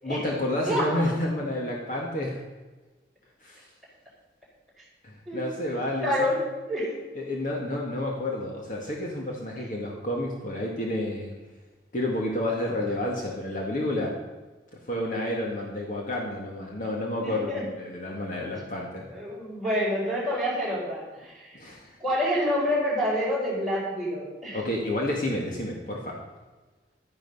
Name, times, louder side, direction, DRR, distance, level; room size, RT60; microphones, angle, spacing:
voice 1, 0.0-2.4 3.4-3.6 5.0-6.3 7.2-11.3 11.9-14.2 14.7-19.1 21.5-21.9 24.5-26.2, left 1 dB, 45° left, -1 dB, 2.0 m, -30 dB
voice 2, 6.0-6.4 6.7-6.9 17.2-17.7 19.1-21.6 22.0-24.6, equal, ahead, -6 dB, 5.3 m, -27 dB
12.5 x 10.5 x 5.6 m, 1.2 s
head